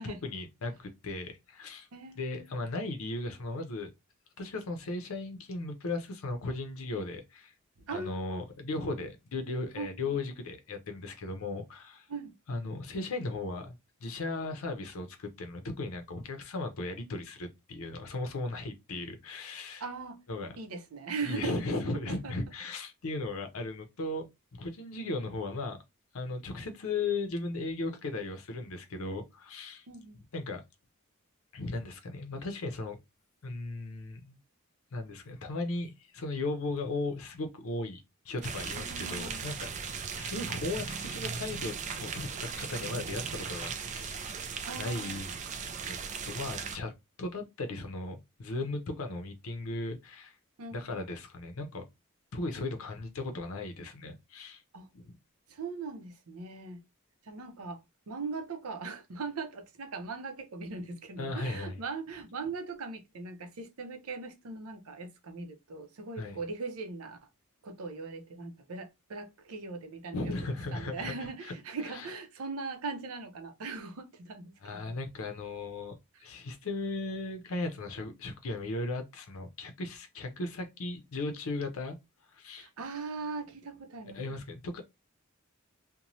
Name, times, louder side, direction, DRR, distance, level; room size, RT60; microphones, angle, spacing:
voice 1, 0.0-1.9 2.2-3.9 4.4-7.5 7.9-12.1 12.5-13.8 14.0-19.8 20.3-20.6 21.3-24.3 24.5-25.8 26.1-29.9 30.3-30.6 31.5-33.0 33.4-34.4 34.9-39.8 40.1-44.4 44.8-45.3 45.9-46.0 46.3-46.9 47.2-50.4 50.7-51.8 52.3-54.6 54.9-55.2 61.2-61.8 66.2-66.4 70.1-71.5 71.9-72.1 74.6-75.9 76.2-82.0 82.3-82.7 84.1-84.8, left 2 dB, 75° left, 0.6 m, -36 dB
voice 2, 1.9-2.5 7.8-8.4 9.8-10.2 12.1-12.3 19.8-20.2 20.6-21.6 22.1-22.3 29.9-30.2 38.8-39.4 44.6-45.5 50.6-50.9 54.7-54.9 55.5-56.8 57.2-57.8 58.1-67.2 67.6-74.8 76.1-76.2 82.6-84.4, right 4 dB, 85° right, 0.6 m, -40 dB
sound 1, 38.4-46.8, right 6 dB, 35° right, 0.3 m, -37 dB
3.0 x 2.1 x 2.6 m
head